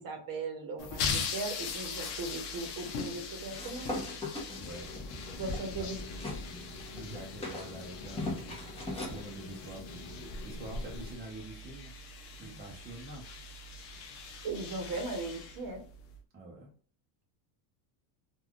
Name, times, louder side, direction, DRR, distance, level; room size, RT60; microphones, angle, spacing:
voice 1, 0.0-4.1 5.4-6.0 12.4-12.6 14.4-15.8, right 3 dB, 45° right, 3 dB, 1.0 m, -38 dB
sound 1, 0.8-16.2, left 5 dB, 55° left, 0.8 m, -41 dB
sound 2, 3.5-6.4 6.8-9.2, left 1 dB, 10° left, 0.9 m, -39 dB
voice 2, 4.5-5.0 5.4-11.9 12.4-13.3 16.3-16.7, right 2 dB, 20° right, -2 dB, 0.7 m, -47 dB
sound 3, 4.6-11.1, left 3 dB, 35° left, 0.4 m, -46 dB
3.3 x 2.4 x 2.4 m, 0.43 s
cardioid pair, 130°, 48 cm